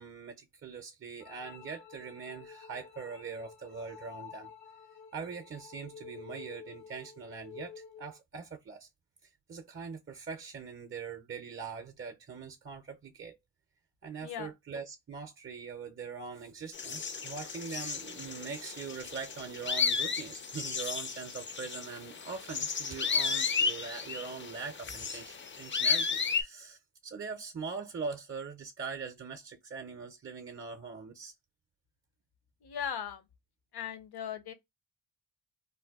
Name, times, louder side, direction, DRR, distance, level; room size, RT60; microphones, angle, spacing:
voice 1, 0.0-4.5 5.1-8.9 9.2-13.4 14.0-31.3, right 5 dB, 30° right, 0.5 m, -42 dB
sound 1, 1.2-8.2, left 6 dB, 85° left, 1.0 m, -50 dB
sound 2, 16.7-26.4, left 5 dB, 30° left, 0.4 m, -33 dB
voice 2, 32.6-33.2 33.7-34.5, left 8 dB, 60° left, 0.7 m, -38 dB
2.6 x 2.2 x 3.4 m
cardioid pair, 60°, 44 cm